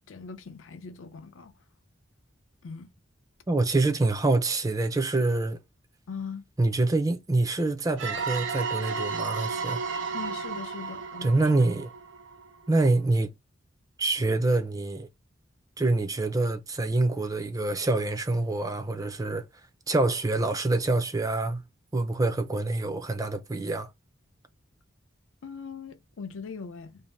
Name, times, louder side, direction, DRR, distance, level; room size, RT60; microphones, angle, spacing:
voice 1, 0.1-1.5 2.6-2.9 6.1-6.5 10.1-11.7 25.4-27.0, left 5 dB, 80° left, 0.5 m, -40 dB
voice 2, 3.5-5.6 6.6-9.8 11.2-11.9 12.7-13.3 14.0-15.1 15.8-19.4 19.9-21.6 21.9-23.9, right 2 dB, 15° right, 0.4 m, -26 dB
Ghost Scare Vintage, 8.0-12.6, right 5 dB, 65° right, 0.6 m, -33 dB
2.7 x 2.1 x 3.1 m
head